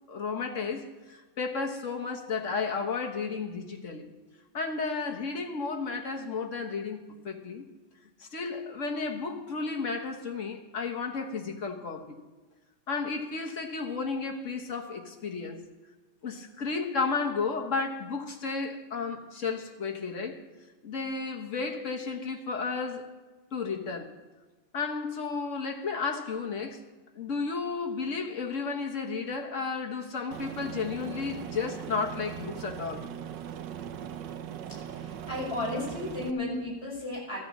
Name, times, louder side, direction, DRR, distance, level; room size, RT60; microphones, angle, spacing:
voice 1, 0.1-4.1 4.5-7.7 8.2-12.2 12.9-15.6 16.2-20.4 20.8-23.0 23.5-24.1 24.7-26.8 27.1-33.1, left 4 dB, 40° left, 2 dB, 1.6 m, -33 dB
Aircraft, 30.3-36.3, right 9 dB, 70° right, 1.3 m, -40 dB
voice 2, 34.9-37.4, left 2 dB, 15° left, -5 dB, 6.0 m, -34 dB
14.0 x 9.4 x 7.2 m, 1.2 s
omnidirectional pair, 2.1 m